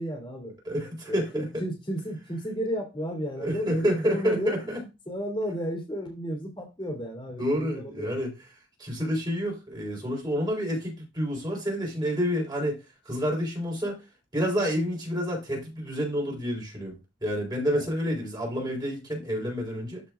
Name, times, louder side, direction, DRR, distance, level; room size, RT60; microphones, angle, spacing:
voice 1, 0.0-0.6 1.1-8.2 17.7-17.9, equal, 25° left, 2.6 m, -33 dB
voice 2, 0.7-1.5 3.4-4.8 7.4-8.3 8.8-12.8 13.1-14.0 14.3-20.0, equal, 20° right, 3.8 m, -29 dB
13.0 x 5.5 x 2.4 m
head